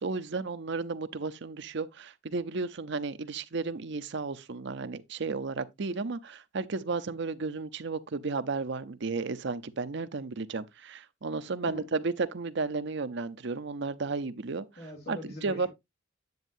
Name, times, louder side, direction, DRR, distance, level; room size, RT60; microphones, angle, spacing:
voice 1, 0.0-14.7 15.1-15.7, right 4 dB, 60° right, 0.7 m, -33 dB
voice 2, 14.8-15.7, left 1 dB, 50° left, 3.0 m, -42 dB
9.4 x 8.1 x 2.6 m
head